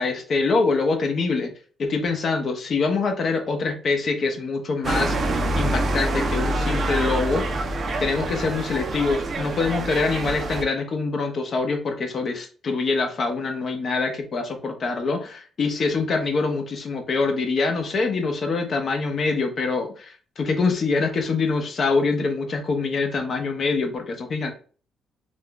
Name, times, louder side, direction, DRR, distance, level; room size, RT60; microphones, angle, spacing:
voice 1, 0.0-1.5 1.8-7.5 8.0-24.5, left 4 dB, 50° left, 5 dB, 0.6 m, -24 dB
sound 1, 4.8-10.6, right 2 dB, 45° right, 0.5 m, -26 dB
2.5 x 2.2 x 3.6 m, 0.40 s
cardioid pair, 90°, 0 cm